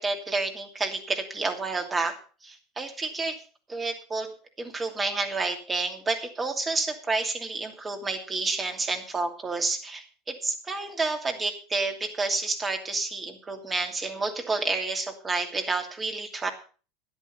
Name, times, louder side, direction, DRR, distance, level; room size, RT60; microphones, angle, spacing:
voice 1, 0.0-2.1 2.4-3.4 3.7-4.3 4.6-16.5, right 3 dB, 20° right, 4 dB, 2.8 m, -29 dB
13.5 x 9.7 x 5.7 m, 0.38 s
figure-of-eight pair, 75°, 0 cm